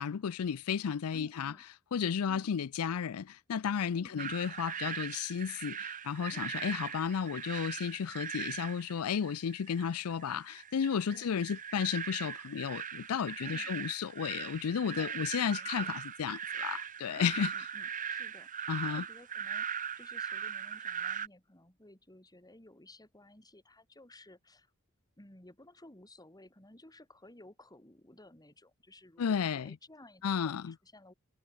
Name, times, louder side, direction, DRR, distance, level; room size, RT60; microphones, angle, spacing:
voice 1, 0.0-1.5 1.9-17.5 18.7-19.0 29.2-29.8 30.2-30.7, left 7 dB, 75° left, 0.4 m, -33 dB
voice 2, 1.1-1.6 2.3-2.5 3.9-4.2 6.3-6.5 11.1-11.3 13.4-13.8 14.9-15.9 17.2-24.7 25.2-31.1, left 1 dB, 20° left, 3.7 m, -56 dB
sound 1, 4.2-21.3, right 7 dB, 35° right, 0.9 m, -40 dB
head